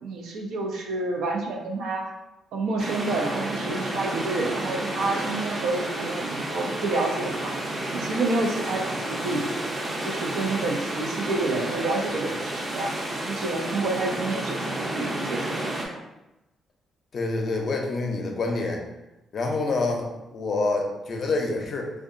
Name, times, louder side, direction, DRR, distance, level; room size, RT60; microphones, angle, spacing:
voice 1, 0.0-2.1 2.5-7.5 7.9-9.5 10.0-13.0 13.3-15.6, right 2 dB, 80° right, 1 dB, 0.4 m, -29 dB
sound 1, 2.8-15.9, right 1 dB, 25° right, 0.5 m, -31 dB
voice 2, 17.1-18.8 19.3-21.9, left 3 dB, 50° left, 1 dB, 0.5 m, -27 dB
2.7 x 2.2 x 2.5 m, 0.98 s
cardioid pair, 90°, 0 cm